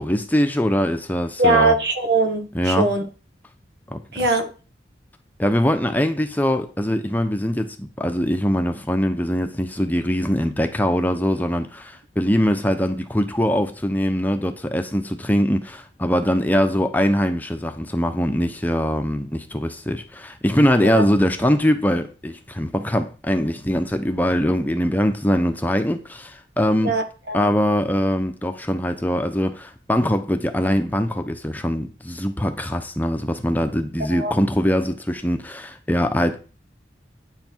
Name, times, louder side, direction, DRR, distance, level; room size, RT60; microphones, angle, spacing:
voice 1, 0.0-1.8 2.5-2.9 3.9-4.0 5.4-26.9 27.3-36.4, equal, 10° left, 0.9 m, -22 dB
voice 2, 1.4-3.0 4.1-4.5 20.8-21.0 26.8-27.5 34.1-34.3, right 2 dB, 70° right, 1.7 m, -21 dB
9.8 x 7.8 x 4.6 m
head